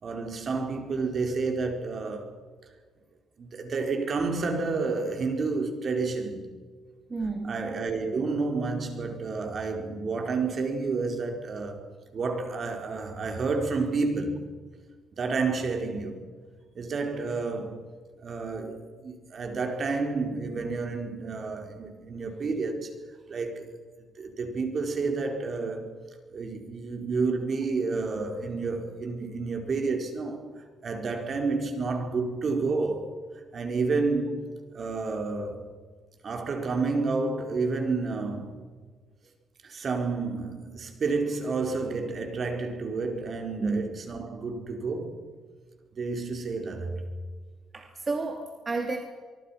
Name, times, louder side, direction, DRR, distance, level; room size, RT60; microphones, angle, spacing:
voice 1, 0.0-2.3 3.4-6.5 7.4-11.9 12.1-14.5 15.1-16.3 16.7-17.8 18.2-22.9 23.3-23.7 24.1-25.9 26.3-33.2 33.5-35.6 36.2-38.6 39.6-45.2 45.9-47.0, right 4 dB, 50° right, 4.6 m, -30 dB
voice 2, 7.1-7.5 43.6-43.8 47.7-49.0, right 3 dB, 30° right, 2.9 m, -31 dB
25.0 x 23.5 x 5.9 m
cardioid pair, 90°, 0 cm